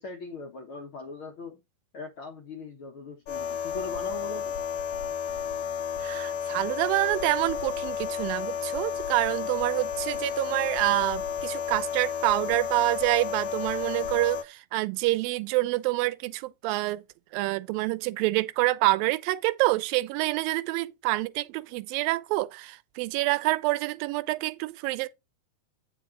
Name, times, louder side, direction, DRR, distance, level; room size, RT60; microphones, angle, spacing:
voice 1, 0.0-1.6 1.9-4.6, left 3 dB, 60° left, 1.4 m, -40 dB
sound 1, 3.3-14.4, left 7 dB, 90° left, 1.5 m, -32 dB
voice 2, 6.0-17.0 17.3-25.1, right 18 dB, 90° right, 2.3 m, -27 dB
8.9 x 5.1 x 3.7 m
omnidirectional pair, 4.0 m